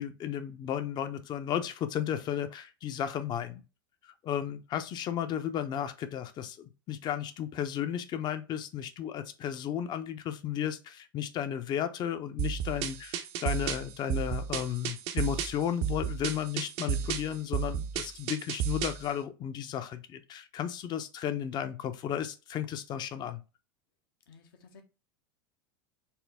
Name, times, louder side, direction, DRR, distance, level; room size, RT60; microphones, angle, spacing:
voice 1, 0.0-3.6 4.2-23.4, left 9 dB, 40° left, 0.6 m, -34 dB
sound 1, 12.4-19.1, right 9 dB, 55° right, 0.6 m, -33 dB
voice 2, 24.3-24.8, left 5 dB, 75° left, 0.9 m, -55 dB
4.3 x 2.0 x 3.4 m
hypercardioid pair, 90°, 12 cm